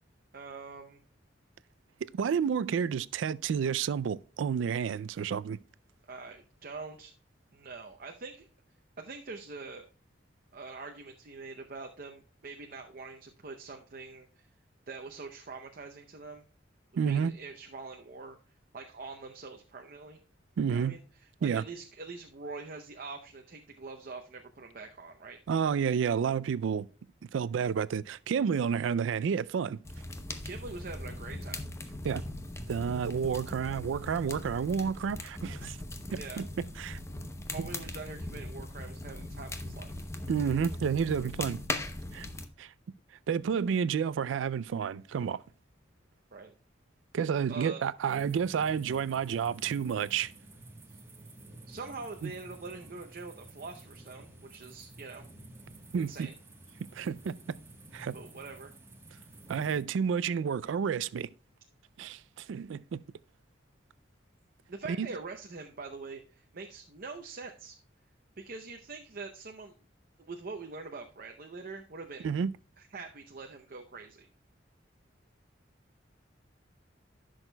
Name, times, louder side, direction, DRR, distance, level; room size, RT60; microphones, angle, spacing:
voice 1, 0.3-1.0 6.1-7.1 7.5-8.5 9.0-9.8 10.5-14.5 14.9-16.4 17.0-18.4 18.7-20.2 20.7-25.4 30.4-31.6 36.1-36.4 37.5-40.1 46.3-46.5 47.5-47.8 50.9-51.0 51.7-55.2 56.0-56.3 58.1-58.7 64.7-67.8 68.4-69.7 70.2-72.3 72.8-74.3, right 4 dB, 50° right, 0.7 m, -44 dB
voice 2, 2.1-5.6 17.0-17.3 20.6-20.9 21.4-21.6 25.5-26.9 27.3-29.8 32.0-32.2 32.7-35.8 36.1-36.5 36.8-37.0 37.6-37.7 40.3-41.6 42.1-42.3 42.6-42.7 43.3-45.4 47.1-50.3 52.2-52.3 55.9-56.3 56.9-57.4 57.9-58.1 59.5-61.3 62.0-63.0 64.9-65.1 72.2-72.5, right 7 dB, 90° right, 0.3 m, -30 dB
sound 1, 29.8-42.5, left 1 dB, 15° left, 0.7 m, -40 dB
sound 2, 48.1-59.8, right 1 dB, 15° right, 1.1 m, -51 dB
14.5 x 6.3 x 2.2 m
head